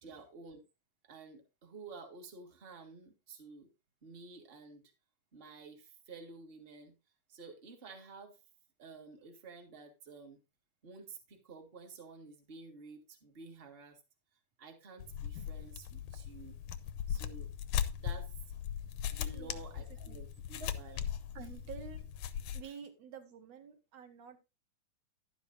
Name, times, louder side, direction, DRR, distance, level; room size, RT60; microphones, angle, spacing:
voice 1, 0.0-0.6 1.0-3.7 4.0-4.8 5.3-6.9 7.3-8.4 8.8-10.4 10.8-14.0 14.6-16.6 17.1-17.5 18.0-18.3 19.1-21.0 22.6-22.7, right 4 dB, 25° right, 4 dB, 1.3 m, -51 dB
sound 1, 15.0-22.6, left 9 dB, 75° left, 1.6 m, -39 dB
voice 2, 19.3-20.2 20.6-20.7 21.3-22.1 22.5-24.4, right 7 dB, 60° right, 7 dB, 2.2 m, -50 dB
11.5 x 9.7 x 2.6 m, 0.26 s
omnidirectional pair, 3.6 m